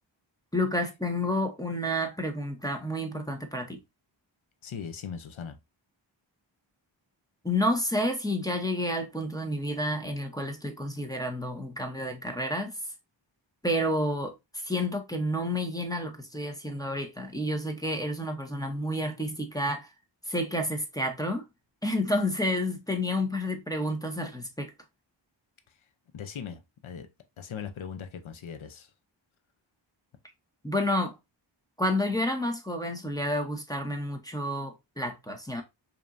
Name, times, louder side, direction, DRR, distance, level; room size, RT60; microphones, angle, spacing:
voice 1, 0.5-3.8 7.4-12.7 13.6-14.3 14.6-19.9 20.3-21.4 21.8-24.7 30.6-31.1 31.8-35.6, left 1 dB, 10° left, 0.8 m, -30 dB
voice 2, 4.6-5.6 26.1-27.1 27.4-28.9, left 7 dB, 85° left, 0.8 m, -39 dB
5.1 x 3.0 x 2.5 m
wide cardioid pair, 80°, 47 cm